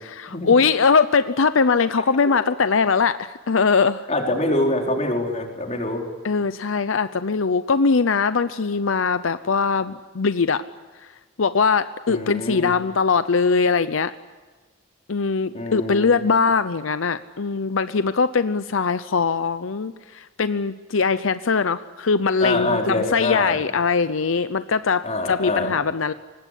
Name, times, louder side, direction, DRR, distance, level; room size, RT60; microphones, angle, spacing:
voice 1, 0.1-4.1 6.2-10.6 11.4-14.1 15.1-26.1, left 5 dB, 80° left, 12 dB, 0.7 m, -21 dB
voice 2, 4.1-6.0 12.1-12.7 15.5-16.2 22.4-23.6 25.0-25.7, left 2 dB, 35° left, 1 dB, 4.4 m, -25 dB
25.0 x 20.5 x 10.0 m, 1.3 s
head